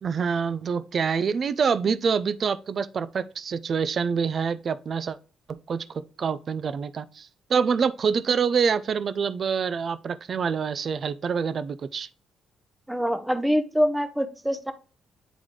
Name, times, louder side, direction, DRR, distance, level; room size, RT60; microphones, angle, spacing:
voice 1, 0.0-5.2 5.5-12.1, right 6 dB, 50° right, 0.4 m, -26 dB
voice 2, 12.9-14.7, equal, 5° right, 0.7 m, -25 dB
9.0 x 3.8 x 3.1 m
cardioid pair, 90°, 0 cm